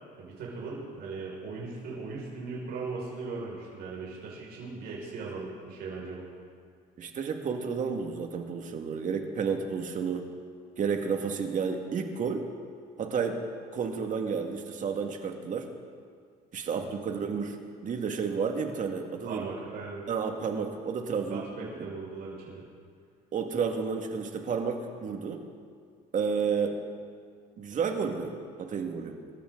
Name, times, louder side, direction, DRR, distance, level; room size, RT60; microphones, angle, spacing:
voice 1, 0.2-6.2 16.7-17.0 19.2-20.0 21.3-22.6, right 4 dB, 70° right, -5 dB, 5.5 m, -38 dB
voice 2, 7.0-10.3 10.8-12.5 13.0-13.4 13.7-15.7 16.5-17.6 17.8-19.5 20.1-21.4 23.3-25.5 26.1-26.8 27.6-29.2, right 6 dB, 50° right, 4 dB, 2.0 m, -31 dB
26.0 x 14.0 x 3.9 m, 2.1 s
cardioid pair, 110°, 17 cm